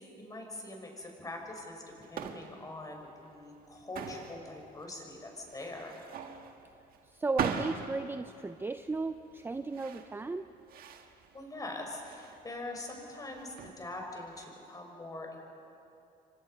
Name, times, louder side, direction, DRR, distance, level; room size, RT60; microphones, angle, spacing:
voice 1, 0.0-6.0 11.3-15.4, left 2 dB, 20° left, 1 dB, 5.5 m, -43 dB
sound 1, 1.4-14.4, right 7 dB, 60° right, 1.7 m, -42 dB
voice 2, 7.1-10.5, right 3 dB, 15° right, 9 dB, 0.6 m, -35 dB
28.5 x 24.5 x 5.5 m, 2.7 s
cardioid pair, 110°, 17 cm